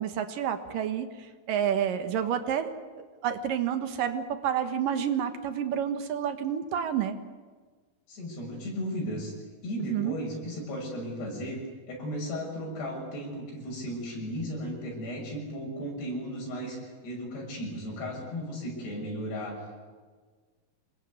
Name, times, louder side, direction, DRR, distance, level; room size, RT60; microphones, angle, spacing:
voice 1, 0.0-7.2 9.9-10.2, right 9 dB, 65° right, 9 dB, 2.7 m, -29 dB
voice 2, 8.1-9.3 9.6-19.7, equal, 90° left, -1 dB, 8.7 m, -35 dB
26.0 x 21.0 x 9.6 m, 1.5 s
omnidirectional pair, 4.6 m